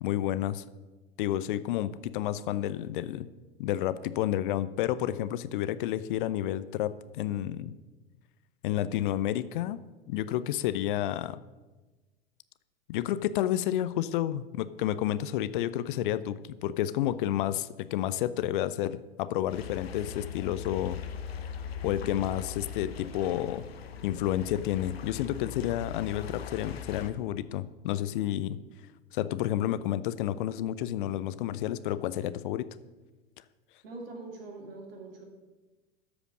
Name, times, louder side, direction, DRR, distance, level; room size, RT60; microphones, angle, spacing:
voice 1, 0.0-0.6 1.2-3.3 3.6-7.7 8.6-9.8 10.1-11.4 12.9-21.0 21.4-21.5 21.8-23.7 24.0-28.6 29.1-32.7, left 12 dB, 55° left, 15 dB, 0.5 m, -30 dB
sound 1, 19.5-27.1, left 7 dB, 75° left, 0.9 m, -40 dB
voice 2, 33.8-35.2, right 3 dB, 65° right, 2 dB, 2.5 m, -43 dB
13.0 x 5.0 x 6.1 m, 1.2 s
figure-of-eight pair, 85°, 31 cm